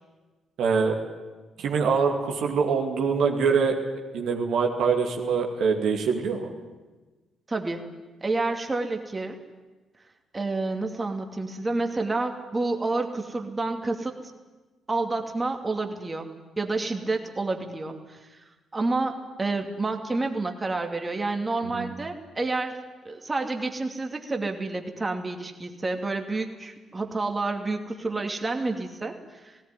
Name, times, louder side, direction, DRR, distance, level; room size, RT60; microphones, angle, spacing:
voice 1, 0.6-1.0 1.6-3.8 4.1-6.5 21.6-21.9, right 5 dB, 70° right, 1 dB, 2.4 m, -24 dB
voice 2, 7.5-7.8 8.2-9.4 10.3-14.1 14.9-16.3 16.6-22.8 23.0-29.6, right 3 dB, 25° right, 4 dB, 2.6 m, -29 dB
17.5 x 17.5 x 9.7 m, 1.2 s
hypercardioid pair, 45°, 0 cm